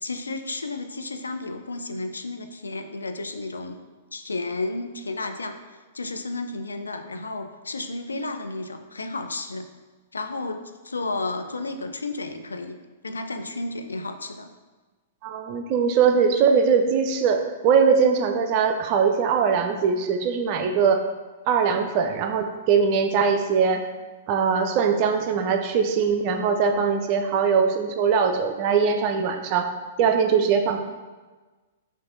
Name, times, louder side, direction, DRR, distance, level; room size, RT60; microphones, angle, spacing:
voice 1, 0.0-3.8 4.1-5.6 5.9-9.7 10.1-12.8 13.0-14.5, left 2 dB, 80° left, 7 dB, 0.3 m, -32 dB
voice 2, 15.2-21.0 21.5-23.9 24.3-29.7 30.0-30.8, right 6 dB, 40° right, 6 dB, 0.4 m, -21 dB
5.8 x 2.5 x 2.5 m, 1.3 s
figure-of-eight pair, 105°, 0 cm